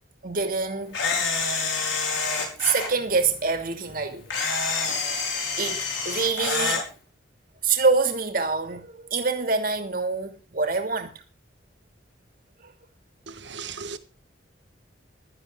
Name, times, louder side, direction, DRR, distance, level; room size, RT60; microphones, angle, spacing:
voice 1, 0.2-1.0 2.6-4.4 5.6-6.8 7.6-11.1 12.6-12.7, right 4 dB, 50° right, 2.7 m, -25 dB
Camera, 0.9-2.9 4.3-6.8, left 4 dB, 85° left, 5.5 m, -27 dB
voice 2, 13.4-14.0, right 5 dB, 70° right, 1.5 m, -36 dB
16.5 x 13.0 x 3.9 m
head